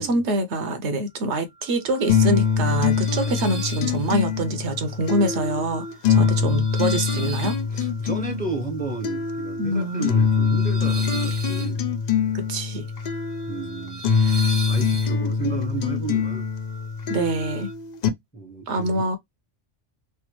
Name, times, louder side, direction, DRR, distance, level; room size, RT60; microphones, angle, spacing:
voice 1, 0.0-5.8 6.1-7.6 9.6-10.1 12.3-12.8 14.1-14.5 17.1-17.7 18.7-19.2, right 1 dB, 70° right, 1.0 m, -25 dB
sound 1, 1.6-17.7, right 2 dB, 40° right, 0.6 m, -39 dB
sound 2, 2.1-18.1, left 6 dB, 65° left, 0.4 m, -24 dB
voice 2, 6.1-6.6 7.7-11.8 13.5-14.0 14.7-16.5 18.3-19.0, right 4 dB, 10° left, 0.7 m, -33 dB
3.3 x 2.2 x 2.9 m
omnidirectional pair, 1.2 m